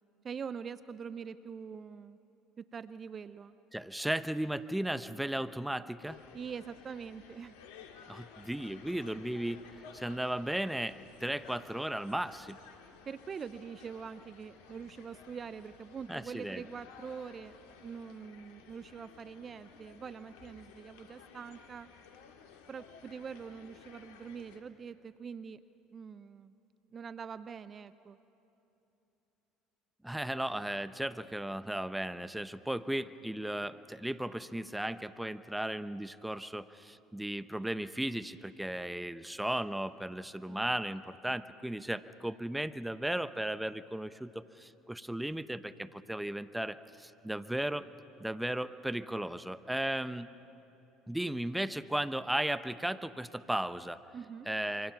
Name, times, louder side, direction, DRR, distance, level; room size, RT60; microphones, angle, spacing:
voice 1, 0.2-2.2 2.6-3.6 6.3-7.6 13.1-21.9 22.7-25.6 25.9-26.5 26.9-28.2 40.5-40.7 54.1-54.5, right 6 dB, 35° right, 14 dB, 0.6 m, -44 dB
voice 2, 3.7-6.2 8.1-9.6 9.9-12.6 16.1-16.6 30.0-47.8 48.2-50.3 51.1-54.0 54.5-54.9, right 1 dB, 5° right, 13 dB, 0.8 m, -35 dB
sound 1, 6.0-24.6, left 6 dB, 75° left, 2.1 m, -55 dB
27.0 x 24.5 x 6.0 m, 3.0 s
hypercardioid pair, 70°, 0 cm